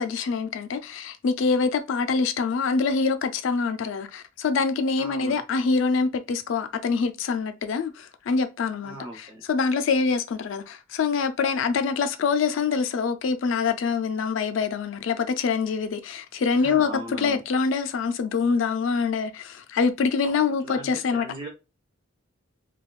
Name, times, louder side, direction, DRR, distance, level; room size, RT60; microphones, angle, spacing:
voice 1, 0.0-21.3, left 5 dB, 65° left, 0.3 m, -25 dB
voice 2, 5.0-5.4 8.8-9.4 16.5-17.4 20.6-21.5, right 1 dB, 25° right, 0.9 m, -38 dB
3.5 x 2.3 x 2.4 m
head